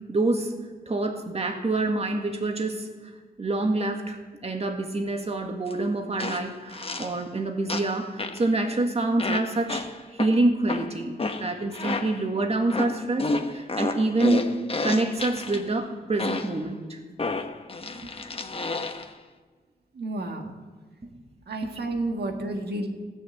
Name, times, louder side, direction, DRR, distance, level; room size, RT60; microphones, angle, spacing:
voice 1, 0.1-0.5 0.9-3.1 3.4-14.5 14.8-17.0 17.9-18.1 21.0-21.2, right 2 dB, 40° right, 3 dB, 1.9 m, -27 dB
sound 1, 5.7-5.8 6.2-7.2 7.7-8.5 9.2-12.3 12.7-15.6 16.2-16.7 17.2-19.1, left 3 dB, 35° left, 1.1 m, -31 dB
voice 2, 19.9-20.6 21.5-22.9, right 2 dB, 80° right, 3 dB, 1.8 m, -31 dB
15.0 x 6.9 x 8.3 m, 1.5 s
cardioid pair, 70°, 17 cm